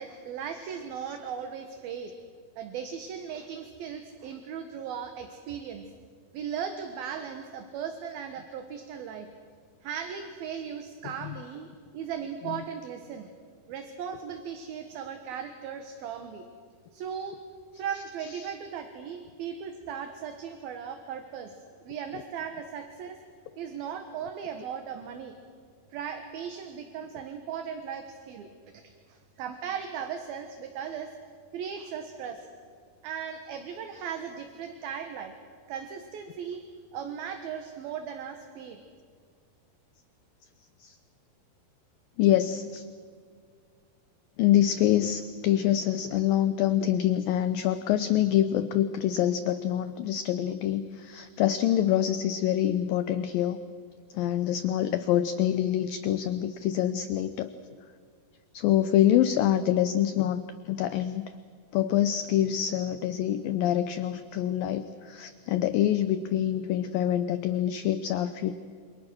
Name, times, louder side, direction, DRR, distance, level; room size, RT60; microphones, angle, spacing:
voice 1, 0.0-2.1 2.6-5.9 6.3-9.3 9.8-11.7 11.9-13.3 13.7-16.4 16.9-17.4 17.7-21.5 21.8-23.2 23.6-25.4 25.9-28.5 28.7-28.8 29.1-31.1 31.5-32.5 33.0-35.3 35.7-36.6 36.9-38.8, right 7 dB, 65° right, 6 dB, 3.0 m, -37 dB
voice 2, 42.2-42.9 44.4-53.6 54.1-57.5 58.5-61.3 61.7-68.6, left 11 dB, 75° left, 11 dB, 2.1 m, -26 dB
28.0 x 27.0 x 6.3 m, 2.1 s
omnidirectional pair, 4.9 m